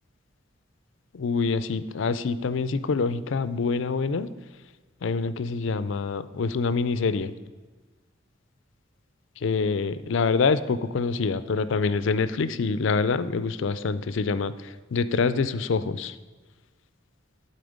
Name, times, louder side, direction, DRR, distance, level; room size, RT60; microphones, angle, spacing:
voice 1, 1.1-4.3 5.0-7.3 9.4-16.2, left 4 dB, 65° left, 14 dB, 0.4 m, -26 dB
11.5 x 4.3 x 5.1 m, 1.3 s
head